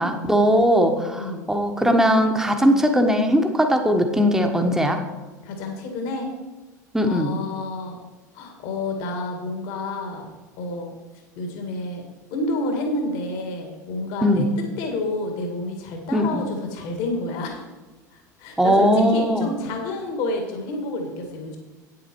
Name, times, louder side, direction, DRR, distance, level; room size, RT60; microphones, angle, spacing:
voice 1, 0.0-5.0 6.9-7.3 14.2-14.4 16.1-16.4 18.6-19.5, equal, 5° right, 4 dB, 1.2 m, -19 dB
voice 2, 1.1-1.5 5.4-6.3 7.0-8.0 8.3-10.3 10.6-10.9 11.4-12.0 12.3-17.6 18.1-21.6, left 2 dB, 55° left, 3 dB, 2.0 m, -29 dB
9.2 x 8.5 x 4.6 m, 1.2 s
figure-of-eight pair, 75°, 10 cm